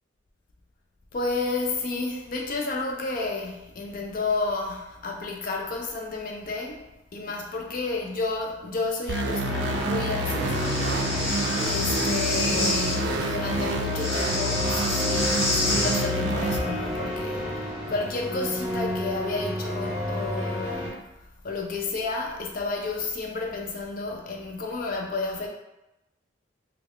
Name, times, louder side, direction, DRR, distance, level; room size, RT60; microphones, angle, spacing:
voice 1, 1.1-6.8 7.1-10.8 11.7-17.4 17.9-20.9 21.4-25.5, left 3 dB, 45° left, 1 dB, 0.4 m, -31 dB
sound 1, 9.1-16.6, equal, 70° right, 0.4 m, -28 dB
sound 2, 9.4-20.9, equal, 5° right, 0.9 m, -31 dB
Breathing, 10.5-13.0 13.9-16.0, left 2 dB, 75° left, 1.3 m, -28 dB
3.3 x 2.3 x 3.5 m, 0.95 s
head